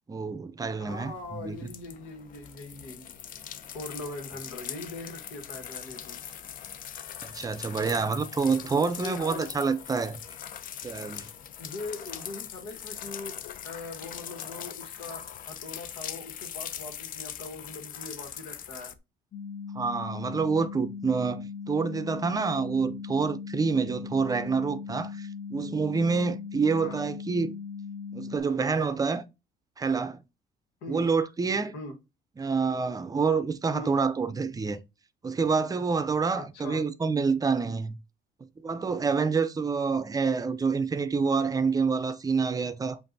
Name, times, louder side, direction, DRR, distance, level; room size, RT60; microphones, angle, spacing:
voice 1, 0.1-1.6 7.2-10.2 10.8-11.3 19.7-27.5 28.1-29.2 29.8-30.2 30.9-31.7 32.4-34.8 35.2-38.0 38.6-43.0, right 5 dB, 20° right, 0.5 m, -27 dB
voice 2, 0.8-3.2 3.7-6.2 8.8-9.5 11.6-18.9 26.8-27.0 30.8-31.0 31.7-31.9 33.7-34.0 36.3-36.9, left 2 dB, 90° left, 1.5 m, -41 dB
sound 1, 0.9-18.9, left 9 dB, 55° left, 0.5 m, -41 dB
sound 2, 19.3-28.4, left 6 dB, 20° left, 0.9 m, -39 dB
7.5 x 2.6 x 2.7 m
cardioid pair, 110°, 17 cm